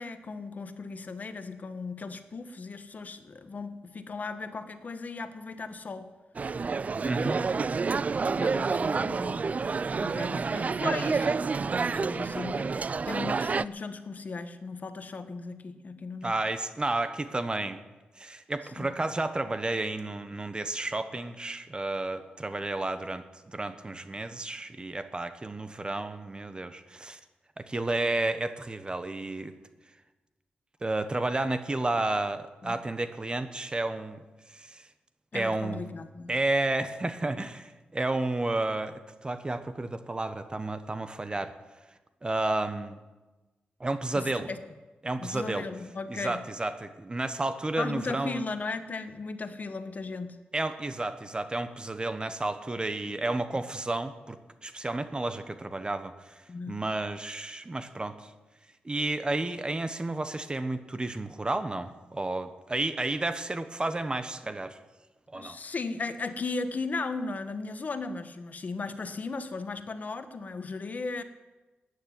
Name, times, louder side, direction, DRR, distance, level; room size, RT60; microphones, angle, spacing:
voice 1, 0.0-6.1 8.4-9.5 10.0-12.8 13.0-16.3 18.8-19.1 32.6-32.8 35.3-36.3 44.1-44.6 45.2-46.4 47.8-50.4 56.5-56.8 65.3-71.2, left 3 dB, 50° left, 10 dB, 1.3 m, -37 dB
sound 1, 6.4-13.7, right 4 dB, 45° right, 0.4 m, -29 dB
voice 2, 7.0-7.4 16.2-17.8 18.2-27.2 27.6-29.5 30.8-34.2 34.5-34.8 35.3-35.8 36.3-41.5 42.2-43.0 43.8-44.5 45.0-45.7 46.1-48.4 50.5-56.4 56.7-58.3 58.8-64.8 65.3-65.6, right 2 dB, 25° right, 10 dB, 1.2 m, -31 dB
14.0 x 9.7 x 9.6 m, 1.2 s
cardioid pair, 85°, 4 cm